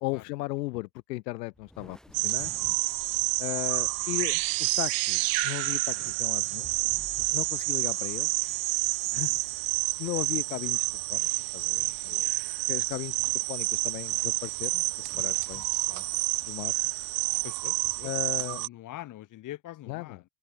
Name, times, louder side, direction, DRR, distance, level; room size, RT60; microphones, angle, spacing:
voice 1, 0.0-2.5 3.4-6.7 7.3-8.3 9.1-9.3 10.0-11.3 11.5-12.2 12.7-13.2 13.5-14.8 15.2-15.6 15.9-16.0 16.4-16.7 18.0-18.6 19.9-20.2, left 20 dB, 85° left, 0.9 m, -36 dB
sound 1, 1.5-18.1, equal, ahead, 7.1 m, -55 dB
sound 2, 2.1-18.7, right 28 dB, 50° right, 0.7 m, -29 dB
voice 2, 17.4-20.2, left 14 dB, 40° left, 2.2 m, -45 dB
open air
supercardioid pair, 120°, 48 cm